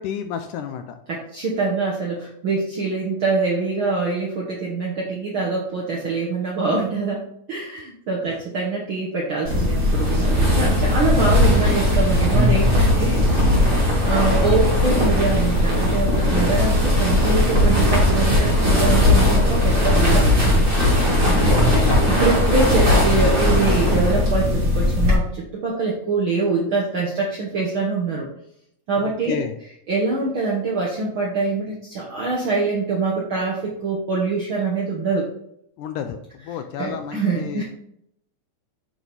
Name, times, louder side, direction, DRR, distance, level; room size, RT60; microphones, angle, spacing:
voice 1, 0.0-1.0 8.3-8.4 21.5-22.0 22.6-22.7 29.0-29.5 35.8-37.6, left 8 dB, 80° left, 7 dB, 1.9 m, -31 dB
voice 2, 1.1-13.2 13.5-20.7 21.2-21.6 21.9-28.3 28.9-29.4 29.9-35.2 36.8-37.6, right 3 dB, 65° right, -4 dB, 1.3 m, -24 dB
sound 1, 9.4-25.1, left 1 dB, 20° right, 1.5 m, -18 dB
9.0 x 4.1 x 3.5 m, 0.72 s
omnidirectional pair, 3.9 m